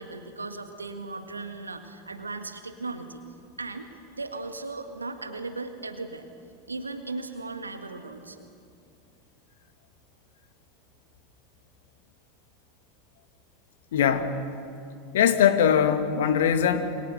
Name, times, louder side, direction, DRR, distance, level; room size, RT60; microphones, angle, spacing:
voice 1, 0.0-3.2 3.6-6.3 6.7-8.5, right 3 dB, 80° right, 7 dB, 1.8 m, -37 dB
voice 2, 13.9-14.5 15.1-17.0, left 8 dB, 65° left, 9 dB, 1.8 m, -22 dB
28.0 x 24.5 x 6.6 m, 2.5 s
figure-of-eight pair, 80°, 0 cm